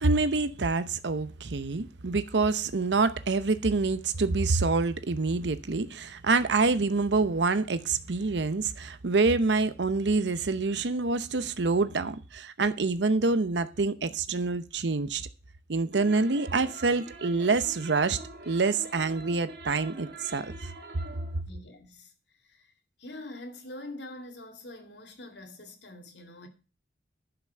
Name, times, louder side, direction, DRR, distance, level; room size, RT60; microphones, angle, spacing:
voice 1, 0.0-15.3 15.7-18.2 18.5-20.5, right 3 dB, 85° right, 0.8 m, -26 dB
sound 1, 15.9-21.4, right 2 dB, 60° right, 2.2 m, -45 dB
voice 2, 21.4-22.1 22.5-22.7 23.0-26.5, left 1 dB, 80° left, 2.6 m, -44 dB
11.5 x 6.0 x 6.6 m
head